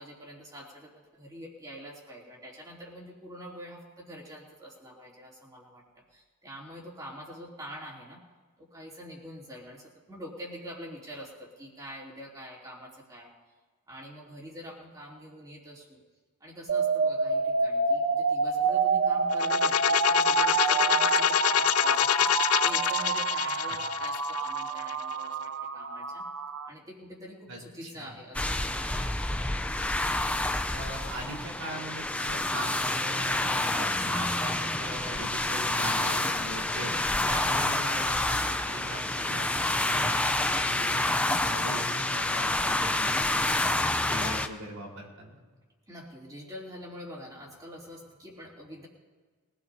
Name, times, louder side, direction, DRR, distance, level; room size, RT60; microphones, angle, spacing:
voice 1, 0.0-8.2 8.6-13.3 13.9-16.0 16.4-26.3 26.6-29.1 45.9-48.9, equal, 15° right, -3 dB, 3.0 m, -45 dB
sound 1, 16.7-26.7, right 4 dB, 65° right, 0.6 m, -28 dB
sound 2, 19.3-25.1, left 11 dB, 80° left, 0.4 m, -26 dB
voice 2, 27.5-28.1 30.7-45.4, right 1 dB, 90° right, -2 dB, 4.2 m, -41 dB
sound 3, 28.3-44.5, left 2 dB, 5° left, 0.5 m, -28 dB
23.0 x 16.5 x 2.8 m, 1.4 s
head